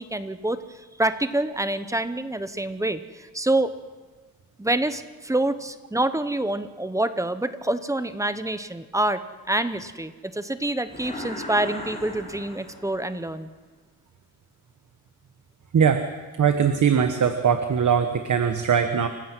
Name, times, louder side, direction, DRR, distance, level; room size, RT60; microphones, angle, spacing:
voice 1, 0.0-3.7 4.6-9.2 9.5-13.5, right 1 dB, 10° right, 12 dB, 0.8 m, -26 dB
sound 1, 10.9-13.2, left 1 dB, 15° left, 6.4 m, -37 dB
voice 2, 16.4-19.1, right 7 dB, 50° right, 7 dB, 1.2 m, -21 dB
28.0 x 15.5 x 6.1 m, 1.3 s
wide cardioid pair, 150°, 37 cm